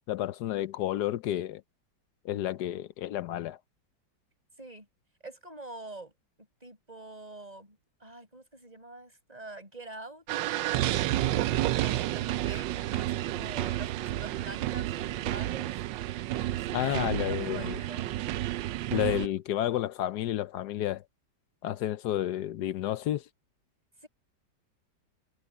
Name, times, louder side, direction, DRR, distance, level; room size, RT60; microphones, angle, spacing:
voice 1, 0.1-1.6 2.2-3.6 16.7-17.8 18.9-21.0 21.6-23.2, left 13 dB, 70° left, 1.1 m, -31 dB
voice 2, 5.2-6.1 6.6-10.3 11.6-15.8 16.3-18.1 24.0-24.1, right 2 dB, 20° right, 7.0 m, -45 dB
sound 1, 10.3-19.3, right 14 dB, 80° right, 1.3 m, -30 dB
omnidirectional pair, 2.0 m